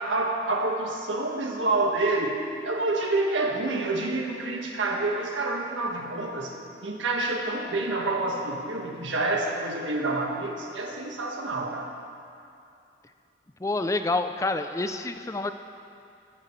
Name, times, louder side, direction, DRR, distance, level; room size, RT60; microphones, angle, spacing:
voice 1, 0.0-6.5 6.8-11.9, right 2 dB, 90° right, 0 dB, 1.7 m, -28 dB
voice 2, 13.6-15.5, left 2 dB, 15° left, 9 dB, 0.4 m, -27 dB
15.5 x 14.5 x 3.2 m, 2.5 s
head